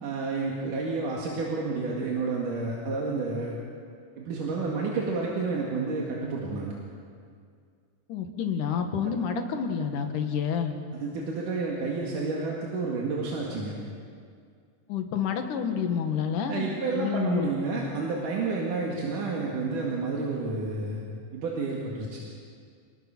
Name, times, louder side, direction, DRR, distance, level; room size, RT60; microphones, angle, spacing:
voice 1, 0.0-3.5 4.2-6.7 10.9-13.7 16.5-21.0 21.3-22.2, right 3 dB, 85° right, -3 dB, 3.6 m, -30 dB
voice 2, 8.1-10.8 14.9-17.5, left 7 dB, 80° left, 5 dB, 3.1 m, -29 dB
28.5 x 19.0 x 6.0 m, 2.2 s
omnidirectional pair, 3.6 m